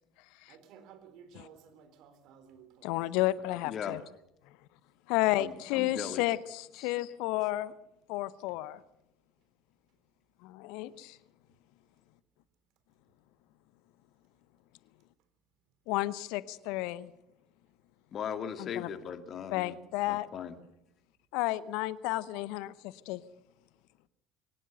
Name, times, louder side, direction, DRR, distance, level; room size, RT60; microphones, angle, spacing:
voice 1, 0.5-2.9, right 7 dB, 60° right, 9 dB, 3.6 m, -55 dB
voice 2, 2.8-4.0 5.1-7.7 8.1-8.8 10.4-11.2 15.9-17.1 18.6-18.9 19.5-20.3 21.3-23.2, left 16 dB, 65° left, 17 dB, 0.9 m, -32 dB
voice 3, 3.6-4.0 5.4-6.3 6.8-6.9 18.1-19.8 20.1-20.6, left 8 dB, 45° left, 9 dB, 2.1 m, -38 dB
23.0 x 18.5 x 6.7 m, 0.84 s
figure-of-eight pair, 65°, 0 cm